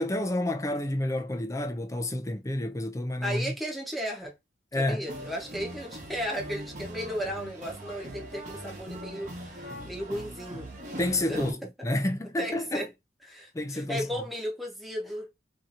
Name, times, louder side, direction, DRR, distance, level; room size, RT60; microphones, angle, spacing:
voice 1, 0.0-3.5 4.7-5.0 11.0-12.9 13.5-14.1, left 1 dB, 20° left, 0.5 m, -29 dB
voice 2, 3.2-4.4 4.7-10.7 11.3-11.4 12.4-12.9 13.3-15.3, equal, ahead, 0.9 m, -35 dB
sound 1, 5.1-11.5, right 1 dB, 45° right, 1.0 m, -41 dB
2.8 x 2.7 x 2.5 m
head